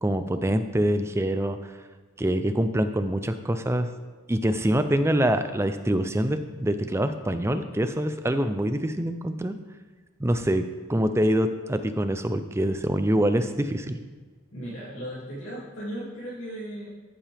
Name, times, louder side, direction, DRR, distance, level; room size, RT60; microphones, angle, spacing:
voice 1, 0.0-1.7 2.2-3.9 4.3-9.6 10.2-10.6 10.9-14.0, right 1 dB, 10° right, 9 dB, 0.5 m, -25 dB
voice 2, 14.5-16.9, equal, 65° left, -9 dB, 2.6 m, -36 dB
14.5 x 7.3 x 3.5 m, 1.4 s
head